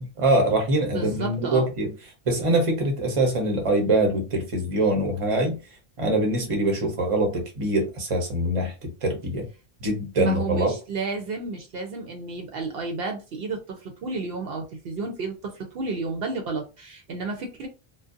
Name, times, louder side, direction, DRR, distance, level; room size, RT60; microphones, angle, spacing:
voice 1, 0.2-1.9 2.3-5.6 6.0-9.5 9.8-10.7, right 1 dB, 35° right, 0.7 m, -23 dB
voice 2, 0.9-1.7 10.2-17.7, right 4 dB, 70° right, 0.8 m, -31 dB
2.6 x 2.1 x 2.4 m
omnidirectional pair, 1.1 m